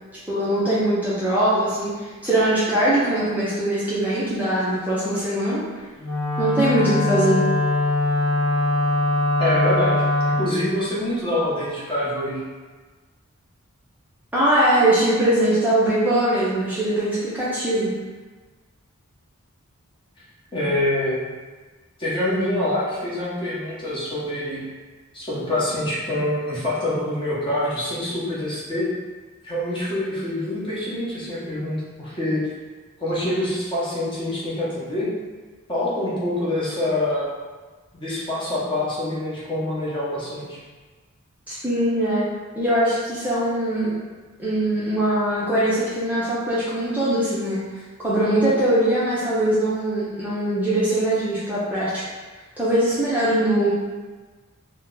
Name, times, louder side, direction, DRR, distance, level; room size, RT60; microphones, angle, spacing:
voice 1, 0.3-5.6 6.4-7.4 14.3-17.9 41.5-42.2 42.6-44.0 44.4-47.6 48.0-51.9 52.6-53.7, right 1 dB, 10° right, -10 dB, 0.5 m, -21 dB
Wind instrument woodwind instrument, 6.0-10.5, left 2 dB, 75° left, 0.9 m, -22 dB
voice 2, 9.4-10.0 10.4-12.4 20.5-21.3 22.0-24.6 25.1-28.9 29.4-32.4 33.0-35.1 35.7-37.3 37.9-40.6, left 1 dB, 25° left, -8 dB, 0.9 m, -25 dB
2.8 x 2.1 x 3.7 m, 1.3 s
head